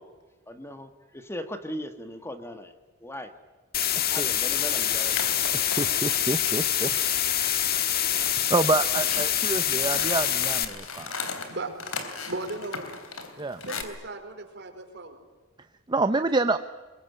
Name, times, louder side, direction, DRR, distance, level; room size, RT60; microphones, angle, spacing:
voice 1, 0.5-2.7 3.0-3.3 4.1-5.2 7.9-8.3, equal, 10° left, 8 dB, 1.5 m, -38 dB
sound 1, 3.7-10.7, left 10 dB, 45° left, 1.6 m, -25 dB
sound 2, 4.6-13.8, left 5 dB, 80° left, 3.5 m, -38 dB
voice 2, 5.5-6.9 8.5-11.3 13.4-13.6 15.9-16.6, right 3 dB, 20° right, 9 dB, 0.7 m, -27 dB
voice 3, 8.4-9.2 11.5-11.7 12.3-12.9 13.6-15.2, right 2 dB, 55° right, 5 dB, 4.6 m, -37 dB
23.0 x 22.5 x 9.5 m, 1.3 s
head